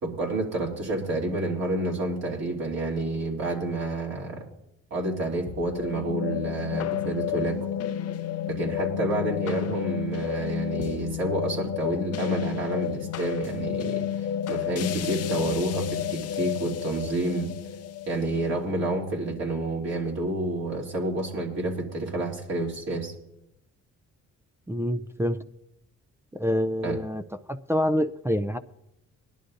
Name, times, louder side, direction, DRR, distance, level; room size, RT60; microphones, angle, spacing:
voice 1, 0.0-4.5 4.9-7.7 8.5-17.5 18.1-23.1 26.8-27.0, right 2 dB, 60° right, -2 dB, 3.1 m, -29 dB
sound 1, 5.5-19.9, left 10 dB, 55° left, 0.6 m, -31 dB
voice 2, 24.7-25.4 26.3-27.2 27.5-28.6, equal, 10° right, 7 dB, 0.4 m, -26 dB
19.0 x 11.0 x 2.6 m, 0.85 s
cardioid pair, 90°, 30 cm